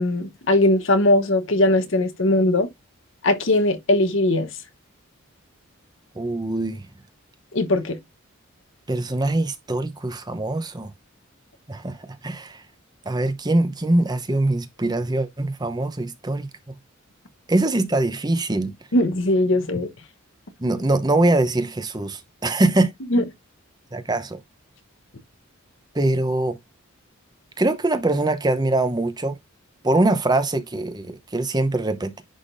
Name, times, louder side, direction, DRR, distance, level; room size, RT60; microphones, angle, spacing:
voice 1, 0.0-2.7 3.2-4.5 7.5-8.0 18.9-19.9 23.1-23.2, left 1 dB, 60° left, 1.0 m, -19 dB
voice 2, 6.1-6.8 8.9-10.9 11.7-12.0 12.2-12.6 13.1-16.5 17.5-18.7 20.6-22.9 23.9-24.4 25.9-26.6 27.6-29.4 29.8-32.2, right 2 dB, 20° right, 0.8 m, -23 dB
10.0 x 3.6 x 2.5 m
head